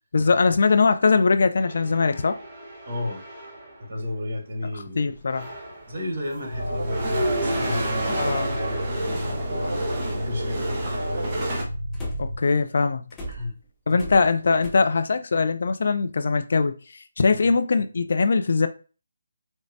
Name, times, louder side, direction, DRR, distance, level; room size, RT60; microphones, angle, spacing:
voice 1, 0.1-2.4 5.0-5.5 8.2-8.6 12.2-13.0 13.9-16.7 17.2-18.7, left 4 dB, 55° left, 0.4 m, -21 dB
sound 1, 1.6-3.8 4.7-4.8 5.2-11.6, right 1 dB, 30° right, 1.0 m, -31 dB
voice 2, 2.8-3.2 3.8-5.1 5.9-9.8 10.0-11.3 13.3-13.5 17.3-17.5, left 2 dB, 50° right, 1.2 m, -33 dB
Alarm, 6.5-12.4, equal, 80° right, 0.6 m, -30 dB
sound 2, 11.9-12.5 13.1-14.7, right 1 dB, 15° left, 0.7 m, -37 dB
5.1 x 2.1 x 2.7 m
figure-of-eight pair, 150°, 0 cm